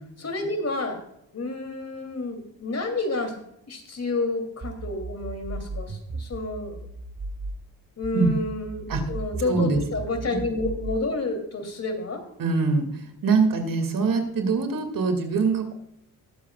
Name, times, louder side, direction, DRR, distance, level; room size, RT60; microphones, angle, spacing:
voice 1, 0.2-1.0 1.3-3.3 3.7-6.8 8.0-12.2, left 2 dB, 45° left, 5 dB, 3.0 m, -29 dB
sound 1, 4.6-7.6 8.0-11.0, right 3 dB, 40° right, 1.8 m, -36 dB
voice 2, 9.4-9.8 10.3-10.4 12.4-12.9 13.2-15.7, right 4 dB, 65° right, 6 dB, 2.5 m, -23 dB
20.5 x 7.8 x 2.4 m, 0.76 s
cardioid pair, 65°, 37 cm